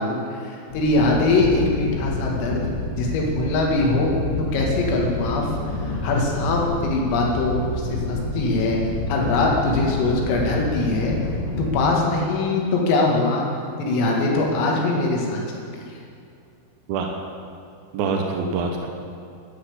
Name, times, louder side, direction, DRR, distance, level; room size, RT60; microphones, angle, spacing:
voice 1, 0.0-4.1 4.5-5.5 5.8-8.8 9.1-11.2 11.6-13.5 13.8-15.4 15.7-15.8, left 2 dB, 80° left, -1 dB, 4.6 m, -22 dB
sound 1, 0.7-11.7, left 2 dB, 25° left, 3.7 m, -28 dB
voice 2, 16.9-17.2 17.9-18.9, right 4 dB, 80° right, 2 dB, 2.2 m, -25 dB
12.0 x 10.0 x 8.5 m, 2.5 s
omnidirectional pair, 5.9 m